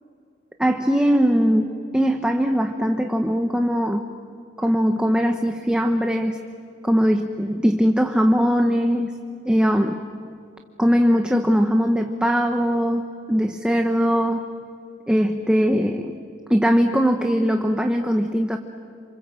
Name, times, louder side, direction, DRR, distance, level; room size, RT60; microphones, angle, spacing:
voice 1, 0.6-4.1 4.6-6.4 6.8-9.1 9.5-10.0 10.8-13.0 13.3-14.4 15.1-16.1 16.5-18.6, equal, 5° right, 4 dB, 0.9 m, -20 dB
28.5 x 27.0 x 7.6 m, 2.5 s
head